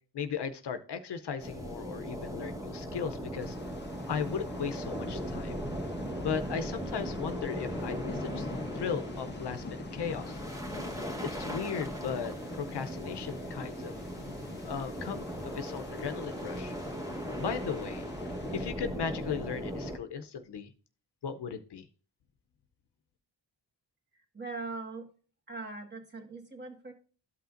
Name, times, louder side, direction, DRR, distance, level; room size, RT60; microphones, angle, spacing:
voice 1, 0.1-3.6 4.1-5.6 6.2-8.5 8.7-10.4 11.3-13.9 14.6-16.7 17.4-18.0 18.5-20.7 21.2-21.8, left 6 dB, 65° left, 9 dB, 0.7 m, -36 dB
sound 1, 1.4-20.0, equal, 10° right, 1.2 m, -38 dB
sound 2, 3.4-18.7, left 4 dB, 25° left, 0.5 m, -47 dB
voice 2, 24.1-25.1 25.5-26.9, right 3 dB, 25° right, 1 dB, 1.6 m, -41 dB
12.5 x 5.6 x 2.5 m, 0.39 s
cardioid pair, 60°, 44 cm